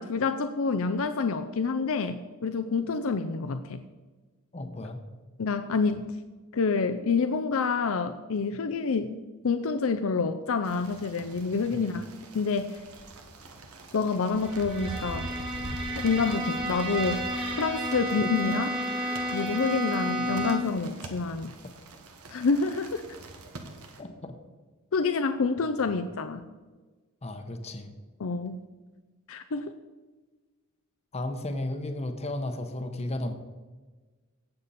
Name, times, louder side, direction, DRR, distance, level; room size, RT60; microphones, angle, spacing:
voice 1, 0.0-3.8 5.4-6.1 6.5-9.2 9.4-12.0 12.3-12.8 13.9-15.3 16.0-17.2 17.6-18.8 19.3-21.5 22.3-23.0 24.9-26.4 28.2-28.6 29.3-29.7, left 4 dB, 65° left, 9 dB, 0.5 m, -27 dB
voice 2, 4.5-5.0 11.7-11.9 24.0-24.3 27.2-27.9 31.1-33.3, left 1 dB, 30° left, 6 dB, 0.9 m, -34 dB
sound 1, 10.6-24.0, right 2 dB, 80° right, 1.5 m, -44 dB
Bowed string instrument, 14.4-20.9, equal, 25° right, 1.9 m, -32 dB
17.0 x 6.8 x 4.2 m, 1.3 s
head